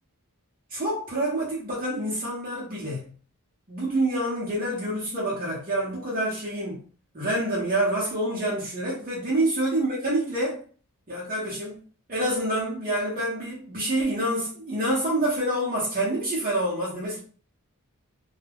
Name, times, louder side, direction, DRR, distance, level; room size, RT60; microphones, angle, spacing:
voice 1, 0.7-3.1 3.7-6.8 7.1-10.6 11.1-11.8 12.1-17.2, right 1 dB, 40° right, -6 dB, 0.8 m, -27 dB
2.3 x 2.1 x 3.3 m, 0.42 s
head